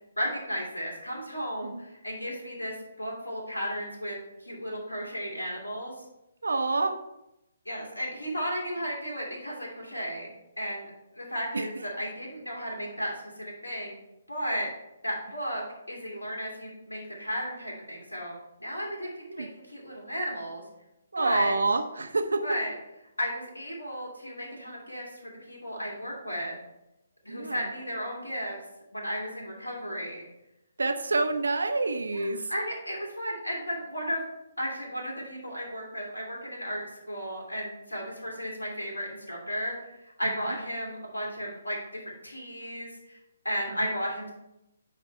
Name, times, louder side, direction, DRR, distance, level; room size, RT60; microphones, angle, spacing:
voice 1, 0.2-5.9 7.7-14.0 14.3-14.7 15.0-20.6 21.2-21.5 22.4-22.7 23.2-26.6 27.2-28.6 28.9-30.2 32.1-34.2 34.6-43.2 43.4-44.3, equal, 75° left, -2 dB, 2.3 m, -34 dB
voice 2, 6.4-7.0 11.5-11.7 14.5-14.7 19.0-19.5 21.1-22.6 27.3-27.7 30.8-32.5 40.2-40.6 43.7-43.9, right 3 dB, 65° right, 7 dB, 0.7 m, -28 dB
9.6 x 3.4 x 4.4 m, 0.89 s
figure-of-eight pair, 135°, 0 cm